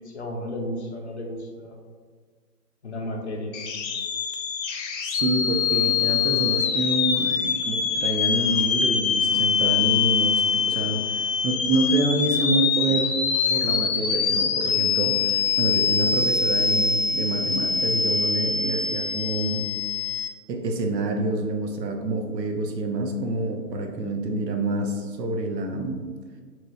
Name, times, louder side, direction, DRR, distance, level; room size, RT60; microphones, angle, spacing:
voice 1, 0.0-1.8 2.8-3.7, left 1 dB, 45° left, 0 dB, 0.5 m, -33 dB
sound 1, 3.5-20.3, left 6 dB, 90° left, 0.6 m, -24 dB
voice 2, 5.0-13.2 13.5-19.7 20.5-26.0, right 2 dB, 75° right, 4 dB, 0.7 m, -27 dB
3.0 x 2.8 x 2.7 m, 1.5 s
hypercardioid pair, 155°, 50 cm